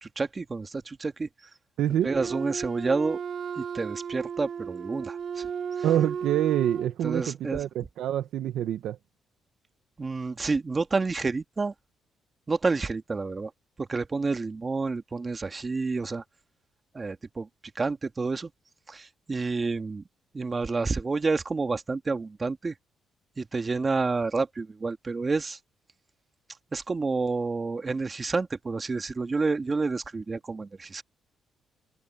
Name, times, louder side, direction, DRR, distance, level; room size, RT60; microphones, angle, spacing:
voice 1, 0.0-1.5 2.0-3.2 3.6-5.5 5.8-5.9 7.0-7.6 10.0-11.7 12.5-13.5 13.8-16.2 16.9-17.5 17.8-18.5 18.9-20.0 20.3-22.8 23.4-25.6 26.7-31.0, right 4 dB, 30° right, 1.9 m, -29 dB
voice 2, 1.8-2.1 5.8-9.0, right 11 dB, 80° right, 1.1 m, -26 dB
Wind instrument woodwind instrument, 2.0-7.0, right 7 dB, 55° right, 2.6 m, -34 dB
cardioid pair, 90°, 0 cm